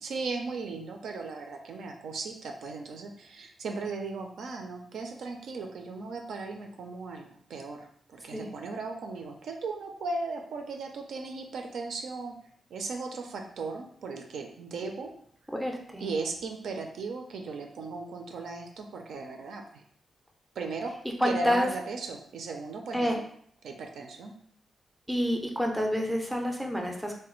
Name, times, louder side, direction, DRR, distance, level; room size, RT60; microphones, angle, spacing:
voice 1, 0.0-12.4 12.7-15.1 16.0-19.8 20.6-21.0 21.2-23.2 23.6-24.3, right 3 dB, 75° right, 3 dB, 0.4 m, -37 dB
voice 2, 15.5-16.1 21.2-21.7 22.9-23.2 25.1-27.2, equal, 5° right, 1 dB, 0.4 m, -28 dB
3.2 x 2.2 x 3.0 m, 0.63 s
wide cardioid pair, 170°, 0 cm